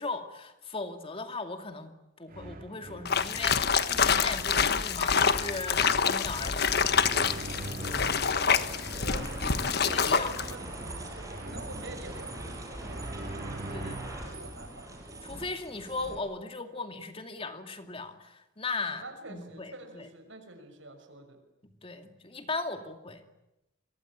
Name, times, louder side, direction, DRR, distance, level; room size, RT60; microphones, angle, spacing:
voice 1, 0.0-6.9 9.9-10.3 13.7-14.0 15.2-19.0 19.3-20.0 21.8-23.2, left 3 dB, 30° left, 7 dB, 2.4 m, -37 dB
sound 1, 2.3-14.3, right 1 dB, 50° right, 3.1 m, -45 dB
sound 2, 3.1-10.5, left 6 dB, 55° left, 1.4 m, -26 dB
sound 3, 6.2-16.2, right 1 dB, 15° right, 7.1 m, -41 dB
voice 2, 6.7-10.6 11.1-13.5 13.8-15.0 18.9-21.4, right 2 dB, 75° right, 7 dB, 6.3 m, -47 dB
28.5 x 23.0 x 8.7 m, 0.93 s
head